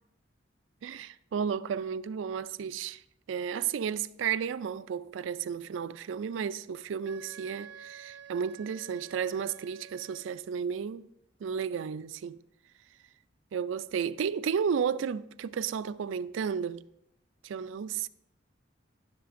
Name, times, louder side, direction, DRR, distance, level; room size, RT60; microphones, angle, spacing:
voice 1, 0.8-3.0 3.3-11.1 11.4-12.4 13.5-16.9 17.4-18.1, right 7 dB, 90° right, 0.3 m, -33 dB
Wind instrument woodwind instrument, 7.0-10.6, right 8 dB, 65° right, 1.1 m, -50 dB
17.0 x 6.5 x 2.6 m
head